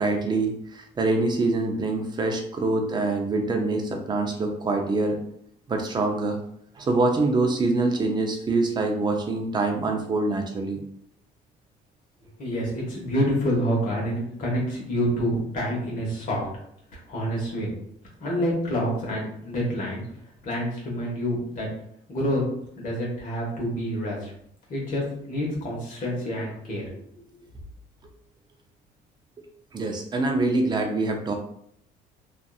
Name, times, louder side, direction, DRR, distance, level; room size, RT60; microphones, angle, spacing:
voice 1, 0.0-5.2 5.7-6.4 6.8-10.8 29.4-29.5 29.7-31.3, right 2 dB, 25° right, 3 dB, 0.5 m, -25 dB
voice 2, 12.4-16.5 16.9-17.7 18.2-20.0 20.4-21.7 22.1-22.4 22.8-24.3 24.7-27.2, equal, 55° left, -3 dB, 1.0 m, -27 dB
2.6 x 2.4 x 2.3 m, 0.69 s
cardioid pair, 110°, 17 cm